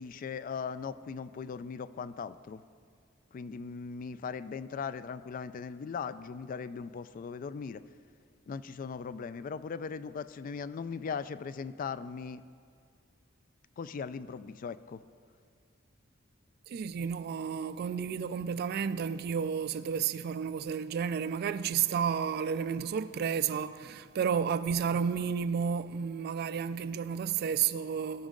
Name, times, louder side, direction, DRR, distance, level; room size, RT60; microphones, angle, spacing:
voice 1, 0.0-2.6 3.3-7.8 8.5-12.4 13.8-15.0, left 5 dB, 45° left, 0.3 m, -39 dB
voice 2, 16.7-28.3, right 7 dB, 50° right, 0.3 m, -31 dB
17.0 x 6.3 x 3.8 m
head